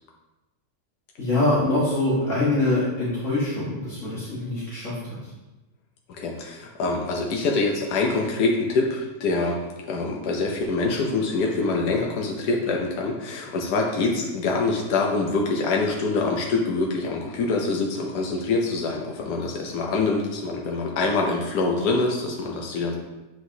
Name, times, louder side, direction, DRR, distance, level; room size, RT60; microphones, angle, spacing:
voice 1, 1.2-5.2, left 2 dB, 55° left, -9 dB, 1.9 m, -24 dB
voice 2, 6.1-9.6 9.9-22.9, left 3 dB, 85° left, 0 dB, 1.3 m, -25 dB
7.7 x 4.9 x 2.7 m, 1.1 s
omnidirectional pair, 1.6 m